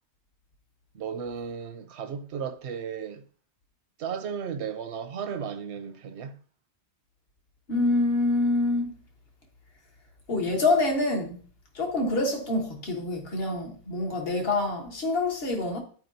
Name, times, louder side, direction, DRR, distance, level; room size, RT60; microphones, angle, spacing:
voice 1, 0.9-3.2 4.0-6.4, right 7 dB, 80° right, 1.0 m, -35 dB
voice 2, 7.7-8.9 10.3-11.4 11.7-15.8, left 2 dB, 60° left, 1.5 m, -26 dB
12.0 x 4.7 x 2.6 m
omnidirectional pair, 1.1 m